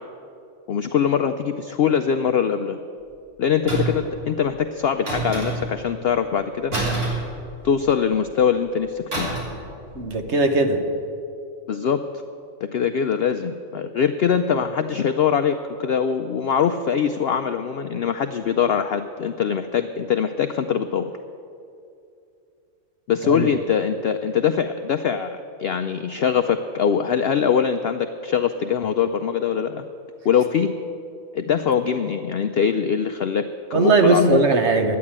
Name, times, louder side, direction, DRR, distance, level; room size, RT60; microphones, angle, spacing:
voice 1, 0.7-2.8 3.4-6.7 7.6-9.3 11.7-12.0 12.7-21.1 23.1-29.8 30.2-30.7 31.3-34.4, left 7 dB, 85° left, 7 dB, 0.5 m, -22 dB
sound 1, 3.7-4.1 5.1-5.8 6.7-7.9 9.1-9.6 9.9-10.1, right 2 dB, 70° right, 3.9 m, -26 dB
voice 2, 9.9-10.8 23.2-23.5 33.7-35.0, right 3 dB, 50° right, 6 dB, 1.2 m, -19 dB
11.0 x 9.4 x 8.7 m, 2.6 s
omnidirectional pair, 1.6 m